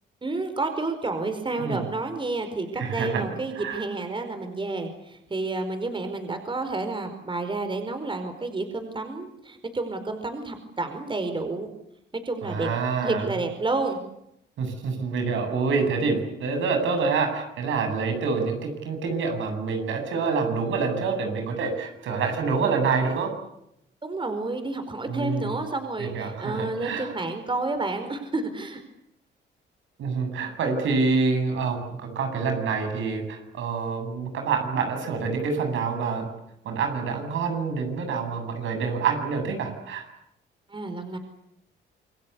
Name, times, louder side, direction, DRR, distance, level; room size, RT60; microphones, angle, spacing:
voice 1, 0.2-11.7 12.1-12.7 13.0-14.0 24.0-28.8 40.7-41.2, right 3 dB, 25° right, 8 dB, 4.8 m, -30 dB
voice 2, 2.8-3.2 3.6-3.8 12.4-13.3 14.6-23.3 25.1-25.6 26.0-27.1 30.0-36.3 36.6-40.1, right 5 dB, 75° right, 5 dB, 8.0 m, -27 dB
28.0 x 22.0 x 8.4 m, 0.79 s
cardioid pair, 90°, 20 cm